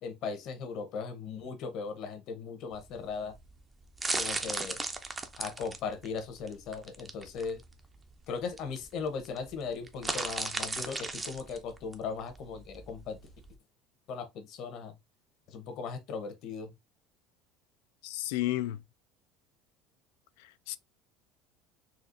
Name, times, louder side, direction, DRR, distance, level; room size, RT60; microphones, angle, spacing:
voice 1, 0.0-3.4 4.2-4.8 5.4-7.6 8.3-13.2 14.1-14.9 15.5-16.7, left 5 dB, 55° left, 0.9 m, -38 dB
sound 1, 2.7-13.6, right 3 dB, 15° right, 0.5 m, -37 dB
voice 2, 18.0-18.8 20.4-20.8, left 16 dB, 90° left, 0.3 m, -32 dB
4.1 x 2.4 x 2.6 m
cardioid pair, 135°, 0 cm